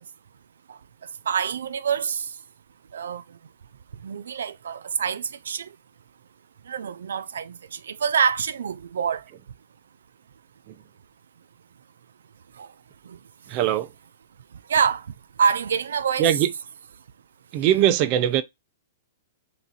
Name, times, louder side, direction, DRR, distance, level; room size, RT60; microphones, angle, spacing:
voice 1, 1.3-2.3 2.9-3.2 4.0-5.7 6.7-9.2 12.6-12.7 13.1-13.2 14.7-15.1 15.4-16.3, right 7 dB, 90° right, 0.3 m, -26 dB
voice 2, 13.5-13.9 16.2-16.5 17.5-18.4, right 11 dB, 35° right, 0.5 m, -21 dB
3.6 x 3.0 x 4.0 m
hypercardioid pair, 155°, 0 cm